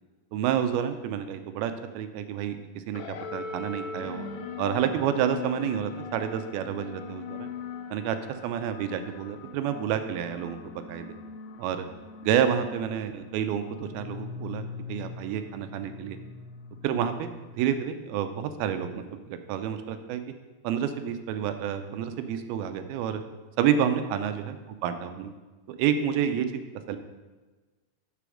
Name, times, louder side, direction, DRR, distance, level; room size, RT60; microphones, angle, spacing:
voice 1, 0.3-3.0 3.3-4.3 4.6-7.5 7.9-8.2 8.4-11.2 11.6-11.9 12.2-16.2 16.8-20.2 20.6-23.2 23.6-25.3 25.7-26.6 26.9-27.0, right 9 dB, 80° right, 9 dB, 2.3 m, -29 dB
sound 1, 2.9-17.7, left 5 dB, 85° left, 2.8 m, -41 dB
7.7 x 6.7 x 6.3 m, 1.3 s
omnidirectional pair, 4.8 m